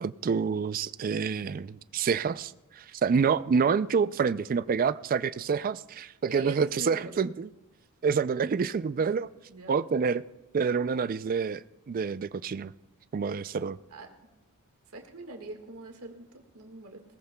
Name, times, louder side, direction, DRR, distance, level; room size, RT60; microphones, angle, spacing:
voice 1, 0.0-7.5 8.0-9.3 9.7-10.2 10.5-12.7 13.1-13.8, right 6 dB, 40° right, 15 dB, 0.3 m, -27 dB
voice 2, 6.3-7.1 9.5-9.8 13.9-14.1 14.9-17.0, right 2 dB, 80° right, 3 dB, 1.7 m, -42 dB
20.5 x 18.0 x 2.2 m, 1.0 s
head